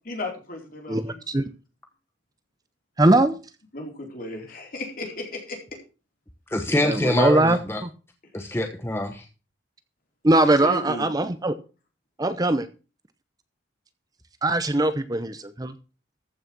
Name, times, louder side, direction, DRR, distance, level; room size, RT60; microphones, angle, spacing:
voice 1, 0.1-0.6 0.8-1.0 3.7-5.6 8.4-8.5 10.4-11.1, left 2 dB, 50° left, 4.2 m, -34 dB
voice 2, 3.0-3.4 6.8-7.9 10.2-11.5 12.2-12.7 14.4-15.7, right 2 dB, 20° right, 0.7 m, -21 dB
voice 3, 6.5-7.8 8.3-9.3, left 1 dB, 15° left, 1.0 m, -25 dB
14.5 x 6.4 x 6.0 m
head